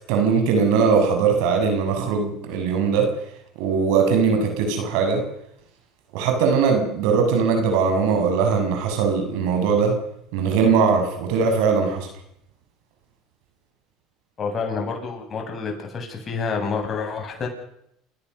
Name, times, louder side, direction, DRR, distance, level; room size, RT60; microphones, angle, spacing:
voice 1, 0.1-3.1 3.6-5.2 6.1-9.9 10.3-12.1, right 5 dB, 75° right, 5 dB, 6.6 m, -20 dB
voice 2, 14.4-17.5, left 5 dB, 40° left, 2 dB, 7.8 m, -28 dB
29.5 x 16.5 x 6.7 m, 0.76 s
supercardioid pair, 90°, 0 cm